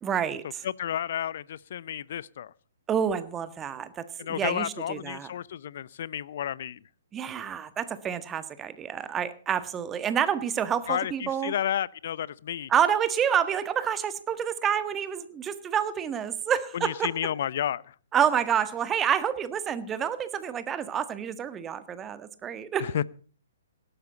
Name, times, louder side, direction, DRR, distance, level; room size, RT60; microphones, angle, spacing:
voice 1, 0.0-0.6 2.9-5.3 7.1-11.5 12.7-17.1 18.1-23.0, right 8 dB, 20° right, 13 dB, 1.5 m, -28 dB
voice 2, 0.6-2.5 4.2-6.8 10.9-12.7 16.7-17.9 22.8-23.0, left 10 dB, 55° left, 22 dB, 0.7 m, -31 dB
17.5 x 12.5 x 4.0 m, 0.41 s
figure-of-eight pair, 130°, 0 cm